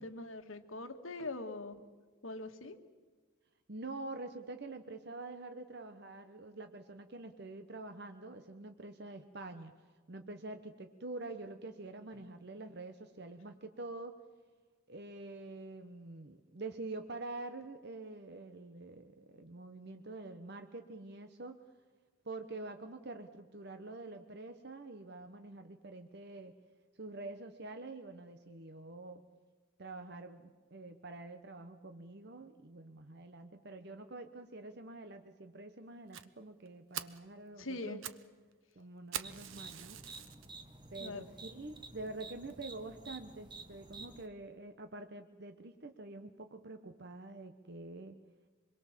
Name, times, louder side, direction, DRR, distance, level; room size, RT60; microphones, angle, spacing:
voice 1, 0.0-1.8 2.2-2.8 37.6-38.1 41.0-41.2, left 2 dB, 75° left, 6 dB, 1.9 m, -42 dB
voice 2, 3.7-9.7 10.1-14.2 14.9-21.6 22.2-26.5 26.9-29.2 29.8-38.0 38.8-40.0 40.9-48.2, right 2 dB, 50° right, 7 dB, 1.1 m, -46 dB
Fire, 36.1-36.3 36.7-36.8 36.9-37.2 37.8-38.3 38.5-38.6 39.1-40.5 41.0-41.1 41.7-41.8 42.1-42.2 42.5-42.6, right 10 dB, 75° right, 0.9 m, -43 dB
sound 1, 39.2-44.3, right 3 dB, 20° right, 1.4 m, -51 dB
26.0 x 22.0 x 7.5 m, 1.4 s
head